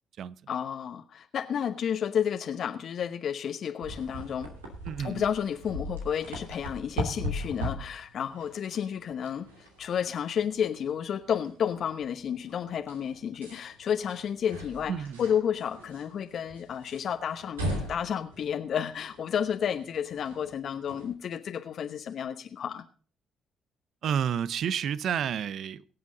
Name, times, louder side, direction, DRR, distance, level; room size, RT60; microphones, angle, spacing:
voice 1, 0.5-4.5 5.0-14.9 15.2-17.6 17.9-22.8, left 8 dB, 60° left, 1.0 m, -31 dB
sound 1, 3.8-21.1, equal, 90° right, 2.5 m, -40 dB
voice 2, 4.9-5.2 14.9-15.2 24.0-25.8, right 8 dB, 60° right, 0.6 m, -30 dB
23.5 x 7.9 x 3.9 m
hypercardioid pair, 45°, 0 cm